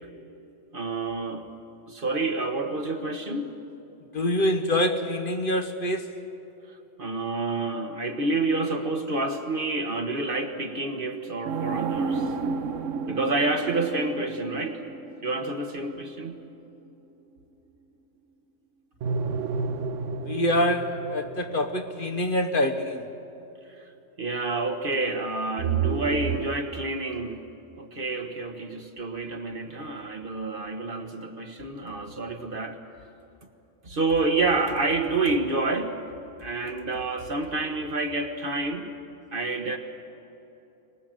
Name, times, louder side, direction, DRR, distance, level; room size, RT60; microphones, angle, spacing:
voice 1, 0.7-1.5 1.9-3.6 6.7-12.3 13.1-14.8 15.2-16.4 23.8-23.9 24.2-27.5 27.8-32.8 33.8-36.0 36.4-38.9 39.3-39.8, right 3 dB, 45° right, 5 dB, 1.5 m, -28 dB
voice 2, 4.1-6.1 20.3-23.1, left 1 dB, 45° left, 5 dB, 1.1 m, -25 dB
sound 1, 11.5-16.6 19.0-23.0 25.6-26.5, right 5 dB, 80° right, 1.3 m, -31 dB
24.0 x 19.5 x 7.8 m, 3.0 s
omnidirectional pair, 1.3 m